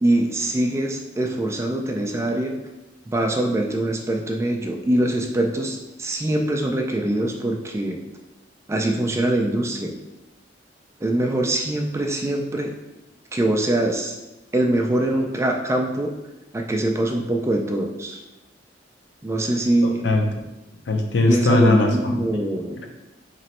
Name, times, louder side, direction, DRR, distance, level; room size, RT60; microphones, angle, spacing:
voice 1, 0.0-2.5 3.1-8.0 8.7-9.9 11.0-12.7 13.3-14.2 14.5-16.1 16.5-18.2 19.2-20.1 21.3-22.8, right 1 dB, 15° right, 2 dB, 0.3 m, -23 dB
voice 2, 19.8-20.3 20.9-22.4, left 2 dB, 70° left, 3 dB, 0.6 m, -20 dB
3.0 x 2.9 x 4.2 m, 1.0 s
head